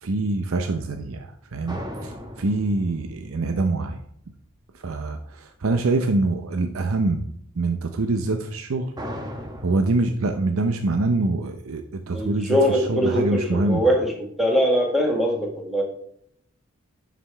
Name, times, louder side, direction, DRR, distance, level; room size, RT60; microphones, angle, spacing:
voice 1, 0.0-4.0 4.7-7.2 7.6-8.9 9.6-13.8, right 2 dB, 80° right, 6 dB, 0.6 m, -25 dB
sound 1, 1.7-4.7 9.0-10.0, equal, 20° right, 1.1 m, -37 dB
voice 2, 12.1-14.1 14.4-15.8, equal, ahead, 0 dB, 1.5 m, -22 dB
11.0 x 5.0 x 3.4 m, 0.68 s
head